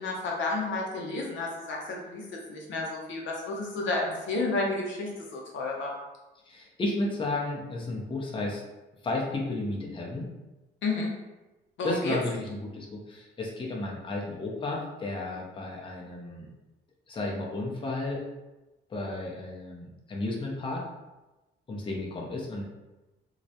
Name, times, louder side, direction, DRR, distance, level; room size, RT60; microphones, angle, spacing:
voice 1, 0.0-5.9 10.8-11.1 11.8-12.2, left 2 dB, 70° left, -1 dB, 0.6 m, -31 dB
voice 2, 6.4-8.6 9.0-10.3 11.8-16.5 17.1-18.2 18.9-20.8 21.7-22.6, left 2 dB, 25° left, -2 dB, 0.5 m, -33 dB
2.3 x 2.0 x 2.7 m, 1.1 s
cardioid pair, 90°, 20 cm